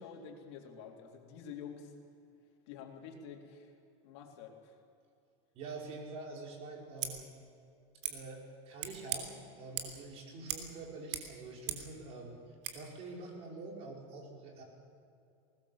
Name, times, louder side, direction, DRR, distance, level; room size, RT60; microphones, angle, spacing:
voice 1, 0.0-1.9 2.7-3.7 4.0-4.7, left 6 dB, 70° left, 2 dB, 3.6 m, -48 dB
voice 2, 5.5-7.3 8.0-12.4 12.7-14.6, right 3 dB, 45° right, 0 dB, 5.5 m, -46 dB
Scissors, 6.9-7.1 8.0-8.1 8.8-9.2 9.8-10.0 10.5-10.7 10.9-11.9 12.6-12.8, right 10 dB, 75° right, 3.2 m, -39 dB
21.0 x 19.0 x 7.4 m, 2.5 s
supercardioid pair, 150°, 15 cm